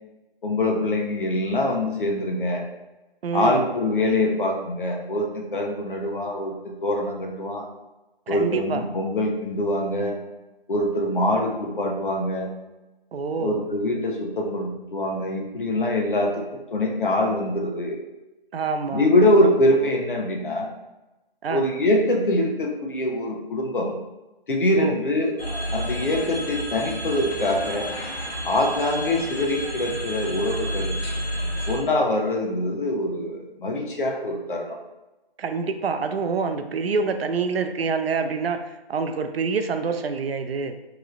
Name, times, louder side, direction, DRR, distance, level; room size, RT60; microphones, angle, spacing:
voice 1, 0.4-2.6 3.3-7.7 8.3-10.2 10.7-12.5 13.4-18.0 18.9-20.7 21.5-24.0 24.5-25.3 25.7-27.9 28.4-30.9 31.7-34.8, left 1 dB, 60° left, 1 dB, 0.7 m, -24 dB
voice 2, 3.2-3.6 8.3-8.8 13.1-13.6 18.5-19.1 21.4-21.6 24.8-24.9 35.4-40.8, right 5 dB, 80° right, 8 dB, 0.5 m, -26 dB
sound 1, 25.4-31.8, equal, 85° left, 1.0 m, -30 dB
3.0 x 2.9 x 2.5 m, 1.0 s
hypercardioid pair, 180°, 30 cm